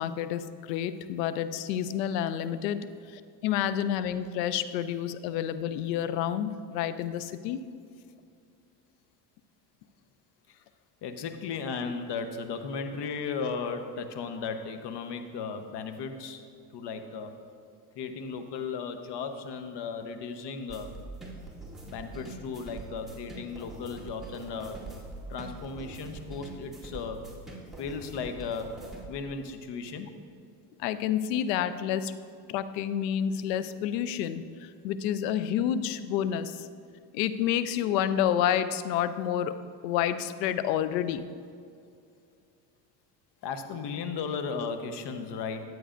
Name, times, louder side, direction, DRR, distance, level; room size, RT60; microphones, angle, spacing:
voice 1, 0.0-7.6 30.8-32.1 32.5-36.7 37.1-39.6 39.8-41.3, left 10 dB, 80° left, 13 dB, 0.6 m, -29 dB
voice 2, 11.0-16.4 16.7-17.3 17.9-20.9 21.8-24.8 25.3-27.2 27.8-28.7 29.1-30.1 43.4-45.6, left 5 dB, 55° left, 7 dB, 1.0 m, -35 dB
sound 1, 20.7-29.0, right 2 dB, ahead, 2.2 m, -44 dB
13.5 x 8.0 x 2.5 m, 2.4 s
hypercardioid pair, 75°, 49 cm